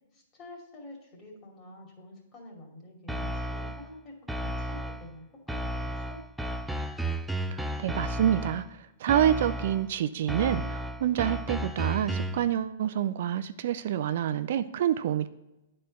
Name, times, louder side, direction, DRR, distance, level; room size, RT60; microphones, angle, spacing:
voice 1, 0.1-6.2, left 1 dB, 25° left, 1 dB, 2.5 m, -48 dB
sound 1, 3.1-3.9 4.3-5.1 5.5-8.7 9.1-9.9 10.3-12.5, right 1 dB, ahead, 0.4 m, -33 dB
voice 2, 7.5-15.3, right 10 dB, 60° right, 12 dB, 0.4 m, -27 dB
9.5 x 4.3 x 5.2 m, 0.96 s
hypercardioid pair, 140°, 0 cm